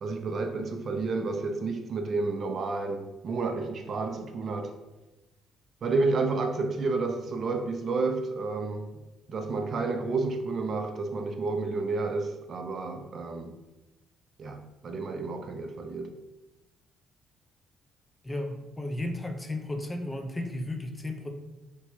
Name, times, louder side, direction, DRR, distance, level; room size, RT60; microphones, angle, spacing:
voice 1, 0.0-4.8 5.8-8.9 9.3-13.6 14.4-16.2, right 3 dB, 50° right, 0.3 m, -30 dB
voice 2, 18.2-21.3, left 1 dB, 15° left, 0.4 m, -34 dB
4.1 x 2.1 x 2.9 m
cardioid pair, 100°, 0 cm